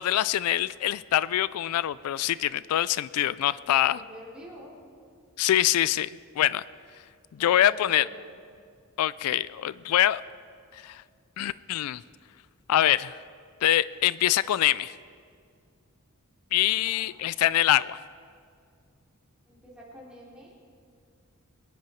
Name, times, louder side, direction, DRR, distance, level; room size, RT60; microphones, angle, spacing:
voice 1, 0.0-4.0 5.4-6.1 6.4-6.6 7.3-8.1 9.0-10.2 10.7-11.0 11.4-12.0 12.7-13.2 13.6-14.9 16.5-18.0, left 12 dB, 85° left, 18 dB, 0.3 m, -24 dB
voice 2, 3.7-4.8 7.4-8.3 16.6-17.1 19.5-20.6, equal, 5° right, -6 dB, 3.8 m, -47 dB
23.0 x 10.5 x 4.6 m, 2.3 s
head